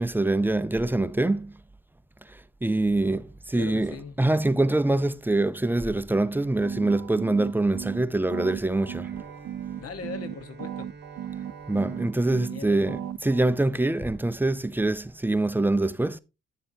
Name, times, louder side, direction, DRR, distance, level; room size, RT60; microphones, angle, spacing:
voice 1, 0.0-1.5 2.3-9.1 11.7-16.2, right 2 dB, 5° right, 0.4 m, -25 dB
voice 2, 3.5-4.2 9.8-10.9 12.3-12.9, left 5 dB, 50° left, 1.2 m, -39 dB
sound 1, 6.6-8.0 8.3-10.3 10.6-12.6 12.9-13.5, right 10 dB, 60° right, 0.5 m, -36 dB
Bowed string instrument, 9.0-13.9, right 4 dB, 35° right, 1.0 m, -48 dB
9.9 x 6.9 x 2.7 m
cardioid pair, 90°, 30 cm